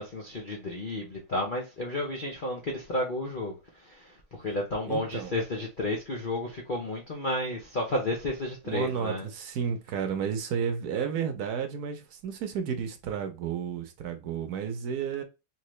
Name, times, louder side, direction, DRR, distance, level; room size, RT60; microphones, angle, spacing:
voice 1, 0.0-9.3, left 1 dB, 75° left, 0.4 m, -32 dB
voice 2, 4.8-5.4 8.6-15.2, right 7 dB, 65° right, 1.0 m, -32 dB
3.7 x 3.0 x 3.1 m
omnidirectional pair, 2.1 m